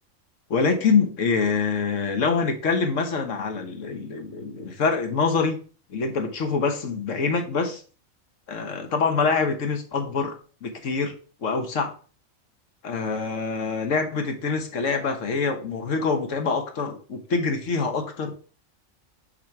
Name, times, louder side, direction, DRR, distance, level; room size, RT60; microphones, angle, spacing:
voice 1, 0.5-5.6 5.9-7.8 8.5-10.4 10.6-11.2 11.4-11.9 12.8-18.3, left 4 dB, 65° left, 5 dB, 1.4 m, -25 dB
6.4 x 3.1 x 5.8 m, 0.38 s
omnidirectional pair, 1.4 m